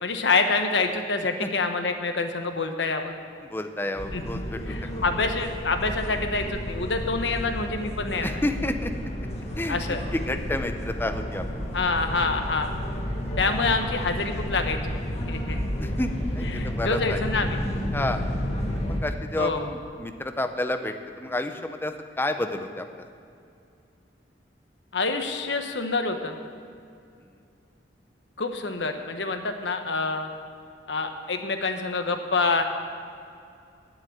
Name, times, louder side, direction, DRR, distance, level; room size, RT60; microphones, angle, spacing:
voice 1, 0.0-3.1 4.1-4.2 4.7-8.3 9.7-10.0 11.7-12.7 13.4-14.8 15.2-15.6 16.5-17.6 19.4-19.7 24.9-26.4 28.4-30.3 30.9-32.6, left 3 dB, 85° left, 6 dB, 1.1 m, -26 dB
voice 2, 3.5-5.1 8.2-8.9 9.6-9.8 10.1-11.4 13.4-13.6 15.4-17.2 17.9-18.2 18.8-23.0, left 1 dB, 15° left, 7 dB, 0.6 m, -30 dB
sound 1, 3.9-19.0, equal, 40° left, 1.6 m, -31 dB
9.5 x 7.5 x 8.6 m, 2.5 s
head